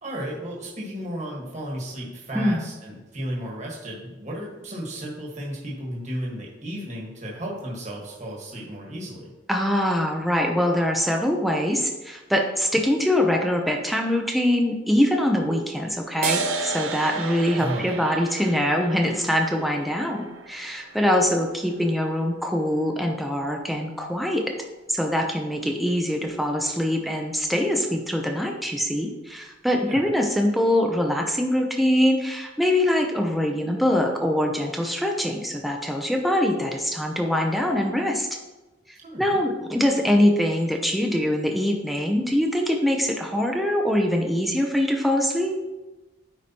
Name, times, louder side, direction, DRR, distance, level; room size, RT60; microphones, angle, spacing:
voice 1, 0.0-9.3 17.6-18.0 29.8-30.0 39.0-39.4, equal, 40° right, -3 dB, 1.5 m, -34 dB
voice 2, 9.5-24.5 24.9-38.3 38.9-45.5, left 1 dB, ahead, 1 dB, 0.5 m, -23 dB
sound 1, 16.2-23.2, right 5 dB, 85° right, 0.6 m, -33 dB
9.4 x 4.8 x 2.9 m, 1.1 s
head